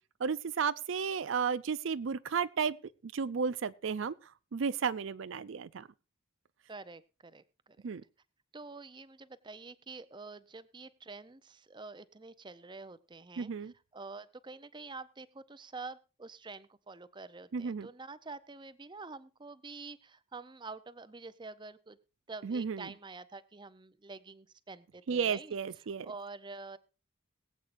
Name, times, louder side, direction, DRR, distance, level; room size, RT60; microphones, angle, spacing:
voice 1, 0.2-2.8 3.1-4.1 4.5-5.9 7.8-8.0 13.4-13.7 17.5-17.9 22.4-22.9 25.1-26.1, right 6 dB, 75° right, 0.5 m, -33 dB
voice 2, 6.7-7.8 8.5-22.0 22.3-25.5 26.0-26.8, right 3 dB, 25° right, 0.6 m, -47 dB
21.5 x 8.3 x 2.6 m
head